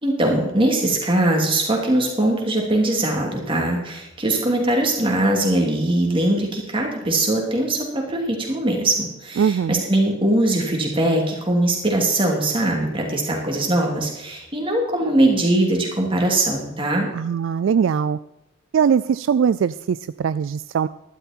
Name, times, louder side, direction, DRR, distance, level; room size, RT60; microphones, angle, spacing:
voice 1, 0.0-17.1, right 1 dB, 25° right, 0 dB, 2.9 m, -21 dB
voice 2, 9.4-9.8 17.1-18.2 18.7-20.9, right 7 dB, 65° right, 15 dB, 0.3 m, -21 dB
12.0 x 12.0 x 4.4 m, 0.91 s
head